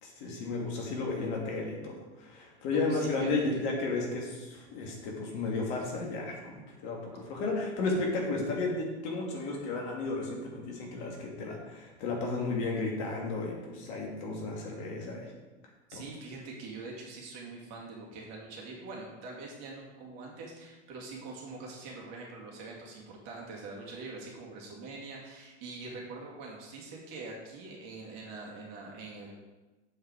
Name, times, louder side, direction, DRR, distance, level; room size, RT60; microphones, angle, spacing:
voice 1, 0.0-15.3 15.9-16.0, left 3 dB, 55° left, -1 dB, 2.4 m, -33 dB
voice 2, 2.7-3.6 15.9-29.4, right 3 dB, 50° right, -2 dB, 2.5 m, -44 dB
7.8 x 4.8 x 4.7 m, 1.2 s
hypercardioid pair, 100°, 34 cm